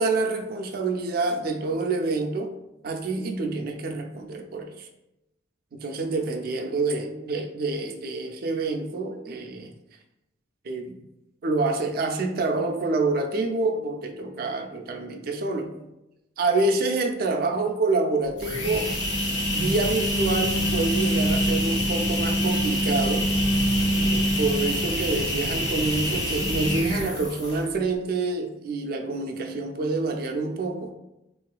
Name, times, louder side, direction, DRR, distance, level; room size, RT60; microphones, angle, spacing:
voice 1, 0.0-2.6 2.8-4.9 5.7-9.7 10.6-11.0 11.4-15.9 16.4-19.0 19.5-23.3 24.0-30.9, right 3 dB, 55° right, 4 dB, 0.4 m, -27 dB
sound 1, 18.3-27.7, equal, 80° left, 0.9 m, -25 dB
3.5 x 2.4 x 2.3 m, 0.89 s
head